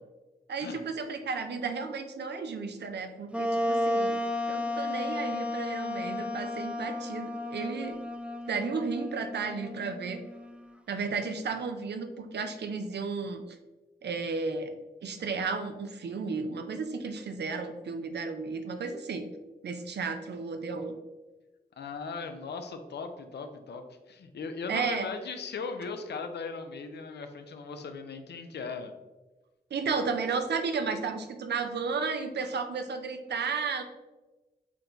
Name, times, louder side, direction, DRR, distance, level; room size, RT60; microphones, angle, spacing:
voice 1, 0.5-4.2 4.5-8.0 8.5-10.2 10.9-13.4 14.0-14.7 15.0-19.3 19.6-20.9 24.7-25.1 29.7-33.8, right 4 dB, 85° right, 7 dB, 0.5 m, -33 dB
Wind instrument woodwind instrument, 3.3-10.7, left 1 dB, 5° right, 0.4 m, -33 dB
voice 2, 21.8-28.9, left 4 dB, 85° left, 7 dB, 0.5 m, -38 dB
5.9 x 2.3 x 3.8 m, 1.1 s
cardioid pair, 45°, 17 cm